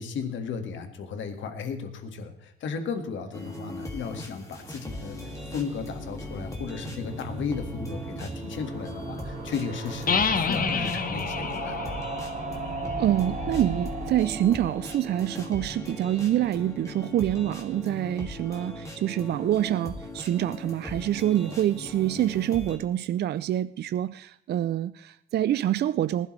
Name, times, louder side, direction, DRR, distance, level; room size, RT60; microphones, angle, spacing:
voice 1, 0.0-5.2 5.5-11.8, left 5 dB, 75° left, 1.8 m, -35 dB
sound 1, 3.3-22.8, left 2 dB, 15° left, 2.7 m, -39 dB
sound 2, 3.8-16.9 17.2-17.3 17.5-17.6 17.8-17.9, right 4 dB, 40° right, 1.9 m, -38 dB
sound 3, 10.1-13.7, left 6 dB, 45° left, 1.2 m, -29 dB
voice 2, 13.0-26.3, right 12 dB, 55° right, 0.4 m, -26 dB
19.5 x 12.0 x 3.2 m
cardioid pair, 90°, 20 cm